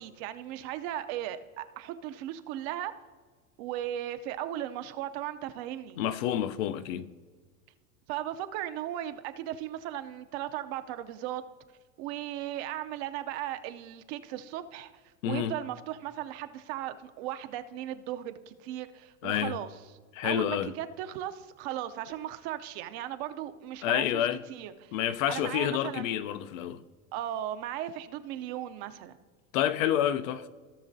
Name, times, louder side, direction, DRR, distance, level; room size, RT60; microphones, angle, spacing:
voice 1, 0.0-2.9 3.6-6.0 8.1-11.4 12.0-14.9 15.2-19.7 20.2-24.2 24.5-25.0 25.3-26.1 27.1-29.1, right 12 dB, 50° right, 0.6 m, -37 dB
voice 2, 6.0-7.1 15.2-15.6 19.2-19.6 20.1-20.7 23.8-24.4 24.9-26.8 29.5-30.5, left 11 dB, 65° left, 0.6 m, -29 dB
16.5 x 6.3 x 2.7 m
supercardioid pair, 130°, 42 cm